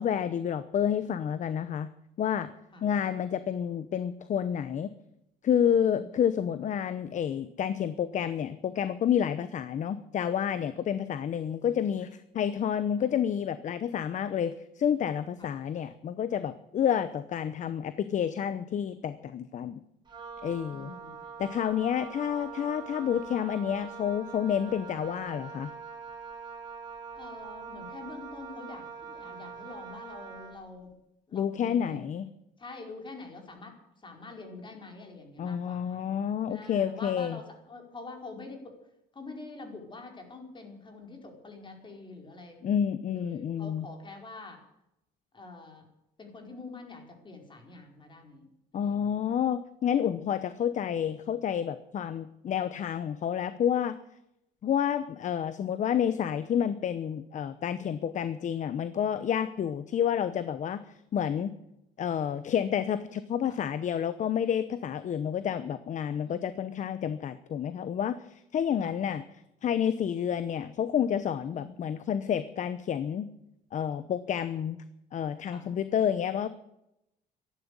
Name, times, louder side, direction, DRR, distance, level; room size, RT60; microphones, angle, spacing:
voice 1, 0.0-1.9 2.2-2.5 2.8-4.9 5.4-19.8 20.4-20.9 21.4-25.7 31.3-32.3 35.4-37.4 42.6-43.9 48.7-53.9 54.6-60.8 61.1-61.5 62.0-69.2 69.6-73.3 73.7-74.8 75.1-76.5, left 9 dB, 45° left, 13 dB, 0.9 m, -29 dB
voice 2, 2.7-3.1 5.7-6.2 13.0-13.1 15.4-15.5 20.7-21.2 27.1-30.9 31.3-32.0 32.6-36.0 36.5-38.8 39.1-42.6 43.1-44.6 45.3-45.9 46.2-48.5 48.7-49.3 50.1-50.3 63.5-63.6 66.2-66.5 68.8-68.9 71.5-71.7 75.5-75.7, left 3 dB, 30° left, 3 dB, 4.8 m, -46 dB
Wind instrument woodwind instrument, 20.1-30.6, right 5 dB, 25° right, 4.3 m, -43 dB
13.5 x 11.0 x 9.7 m, 0.83 s
cardioid pair, 110°, 17 cm